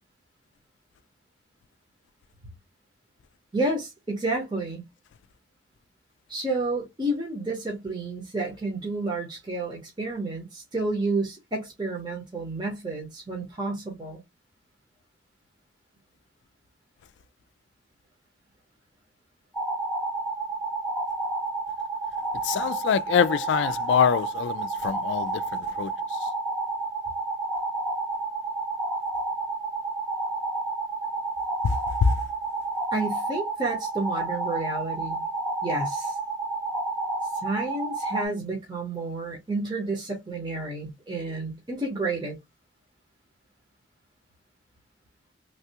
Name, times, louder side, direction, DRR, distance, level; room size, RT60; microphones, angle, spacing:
voice 1, 3.5-4.8 6.3-14.2 32.9-35.2 35.6-36.2 37.4-42.4, right 2 dB, 25° right, 0.9 m, -30 dB
sound 1, 19.5-38.2, right 2 dB, 5° left, 0.8 m, -30 dB
voice 2, 22.4-25.9 31.6-32.1, left 6 dB, 75° left, 0.3 m, -24 dB
3.3 x 2.3 x 2.8 m
head